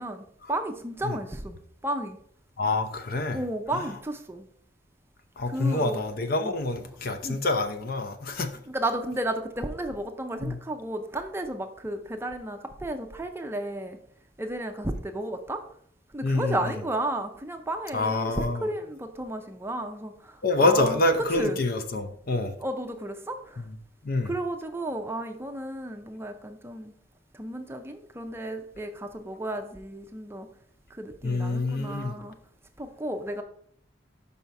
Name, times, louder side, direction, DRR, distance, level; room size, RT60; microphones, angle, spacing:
voice 1, 0.0-2.2 3.3-4.5 5.5-6.0 6.4-6.5 7.2-7.4 8.7-14.0 14.4-15.6 16.1-21.6 22.6-23.7 24.3-26.9 27.3-30.5 30.9-32.4 32.8-33.4, right 1 dB, 15° right, 0.5 m, -33 dB
voice 2, 2.6-3.4 3.7-3.9 5.4-8.5 10.4-10.6 16.2-16.7 17.9-18.7 20.4-22.5 23.6-23.7 24.0-24.3 31.2-32.2, left 2 dB, 50° left, 0.7 m, -27 dB
5.5 x 5.5 x 4.6 m
head